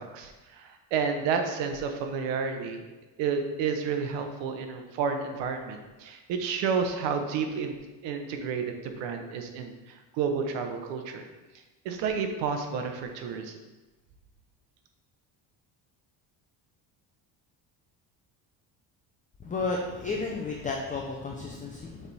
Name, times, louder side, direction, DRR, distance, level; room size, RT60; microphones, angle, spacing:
voice 1, 0.0-2.8 3.2-7.7 8.0-9.8 10.1-11.3 11.8-13.6, right 6 dB, 85° right, 5 dB, 0.9 m, -30 dB
voice 2, 19.4-22.1, left 3 dB, 20° left, -1 dB, 0.5 m, -32 dB
7.1 x 3.5 x 4.1 m, 1.2 s
cardioid pair, 145°, 42 cm